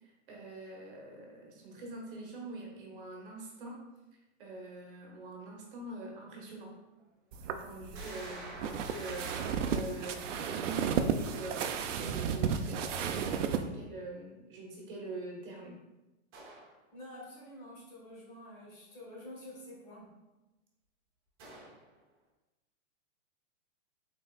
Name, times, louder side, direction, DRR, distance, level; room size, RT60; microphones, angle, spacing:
voice 1, 0.0-3.8 4.4-6.7 7.4-15.8, right 2 dB, 45° right, 0 dB, 1.0 m, -45 dB
sound 1, 6.3-6.4 7.0-7.1 7.9-11.4 16.3-16.7 21.4-21.9, right 2 dB, 20° right, 0.6 m, -48 dB
sound 2, 7.3-13.6, right 7 dB, 70° right, 0.5 m, -33 dB
voice 2, 16.9-20.1, left 1 dB, 30° left, -3 dB, 1.0 m, -48 dB
5.4 x 3.7 x 2.3 m, 1.0 s
hypercardioid pair, 170°, 38 cm